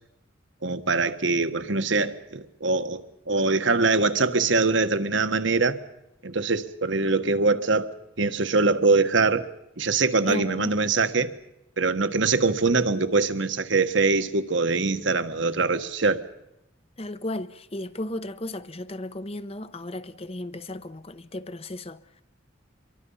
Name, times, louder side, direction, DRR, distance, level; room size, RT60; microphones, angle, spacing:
voice 1, 0.6-5.8 6.2-7.9 8.2-9.5 9.8-11.3 11.8-16.2, right 3 dB, 70° right, 1.5 m, -23 dB
voice 2, 10.2-10.8 17.0-22.2, left 1 dB, 30° left, 0.9 m, -35 dB
26.0 x 23.0 x 5.6 m
head